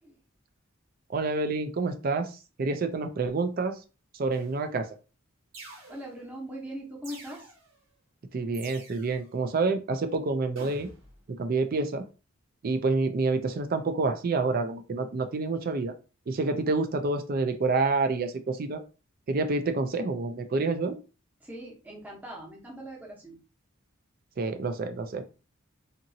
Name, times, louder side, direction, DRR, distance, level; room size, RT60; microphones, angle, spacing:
voice 1, 1.1-3.8 4.1-4.9 8.3-10.9 11.3-12.0 12.6-15.9 16.3-18.8 19.3-21.0 24.4-25.2, right 3 dB, 45° right, 8 dB, 0.4 m, -28 dB
sound 1, 4.3-4.8 5.5-6.3 7.0-7.8 8.5-9.3 10.6-11.2, right 2 dB, 75° right, 1.0 m, -48 dB
voice 2, 5.9-7.5 21.4-23.4, equal, 10° right, -3 dB, 0.8 m, -41 dB
2.8 x 2.5 x 2.7 m, 0.33 s
head